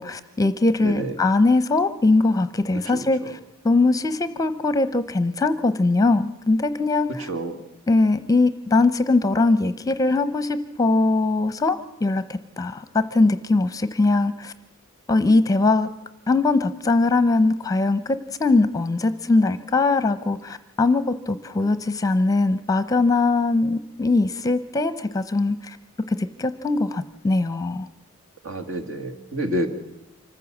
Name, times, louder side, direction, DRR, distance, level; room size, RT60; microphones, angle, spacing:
voice 1, 0.0-3.4 3.6-7.3 7.9-14.5 15.1-15.9 16.3-25.8 26.1-27.9, left 3 dB, 15° left, 12 dB, 0.7 m, -21 dB
voice 2, 7.3-7.6 28.4-29.7, right 1 dB, 65° right, 7 dB, 2.1 m, -28 dB
25.5 x 14.5 x 7.2 m, 0.90 s
head